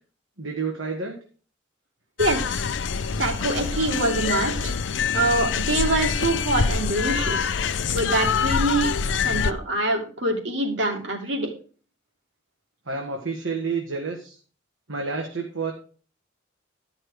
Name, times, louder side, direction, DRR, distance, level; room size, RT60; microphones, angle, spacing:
voice 1, 0.4-1.1 12.9-14.4 14.9-15.7, right 4 dB, 85° right, 1 dB, 1.6 m, -29 dB
sound 1, 2.2-9.5, left 6 dB, 70° left, 0.5 m, -25 dB
voice 2, 2.2-2.7 3.2-4.8 5.1-11.5, right 2 dB, 70° right, 2 dB, 2.4 m, -25 dB
12.5 x 5.8 x 4.9 m, 0.40 s
head